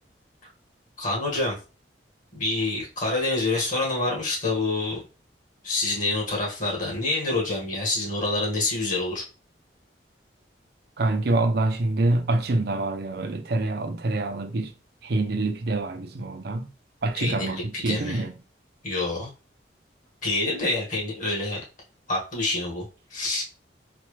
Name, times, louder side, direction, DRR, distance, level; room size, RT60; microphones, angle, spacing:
voice 1, 1.0-1.6 2.3-5.0 5.6-9.3 17.2-18.3 18.8-19.3 20.2-21.6 22.1-22.9 23.1-23.4, left 2 dB, 50° left, 1.7 m, -27 dB
voice 2, 11.0-14.7 15.0-16.7 17.0-18.3, right 2 dB, 65° right, 0.6 m, -26 dB
4.2 x 2.5 x 3.2 m
head